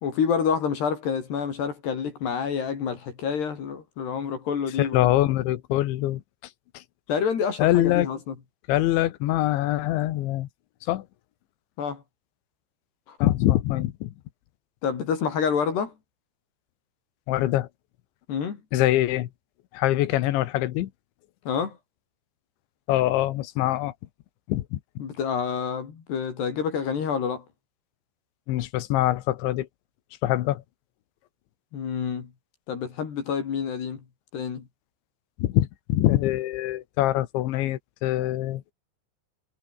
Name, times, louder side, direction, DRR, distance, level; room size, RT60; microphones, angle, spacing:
voice 1, 0.0-5.0 7.1-8.3 11.8-12.0 13.1-13.2 14.8-15.9 18.3-18.6 21.5-21.8 25.0-27.5 31.7-32.3 32.7-34.0 34.3-34.7, left 6 dB, 60° left, 5.5 m, -28 dB
voice 2, 4.8-6.2 6.8-6.9 7.6-8.1 8.7-10.5 10.9-11.1 13.2-14.1 17.3-17.7 18.7-19.3 19.7-20.9 22.9-23.9 24.5-24.8 28.5-29.7 30.2-30.6 35.4-38.6, left 15 dB, 75° left, 3.5 m, -24 dB
omnidirectional pair, 5.4 m